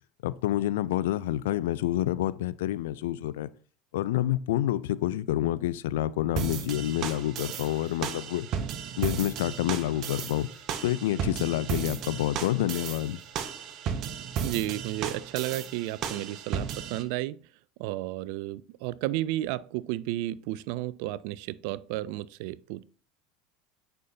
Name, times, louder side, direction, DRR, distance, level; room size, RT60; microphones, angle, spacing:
voice 1, 0.2-3.5 3.9-8.5 9.0-10.5 10.8-13.2, left 14 dB, 70° left, 0.4 m, -28 dB
sound 1, 6.4-17.0, right 7 dB, 45° right, 0.9 m, -34 dB
voice 2, 14.4-17.4 17.8-22.8, right 15 dB, 60° right, 0.3 m, -32 dB
9.2 x 5.6 x 2.6 m
hypercardioid pair, 80°, 0 cm